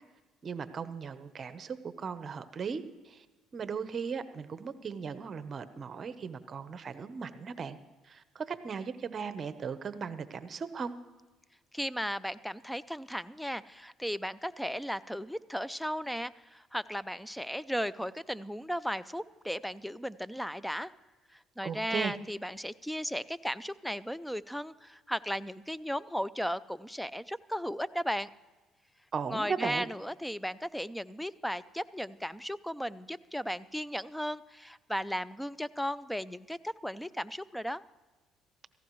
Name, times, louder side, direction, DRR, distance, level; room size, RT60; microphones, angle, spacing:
voice 1, 0.4-3.2 3.5-7.8 8.0-10.9 21.6-22.2 29.1-29.9, right 6 dB, 45° right, 12 dB, 0.9 m, -37 dB
voice 2, 11.7-20.9 21.3-28.3 29.3-37.8, equal, ahead, 17 dB, 0.5 m, -36 dB
17.5 x 15.0 x 3.1 m, 1.2 s
supercardioid pair, 85°, 0 cm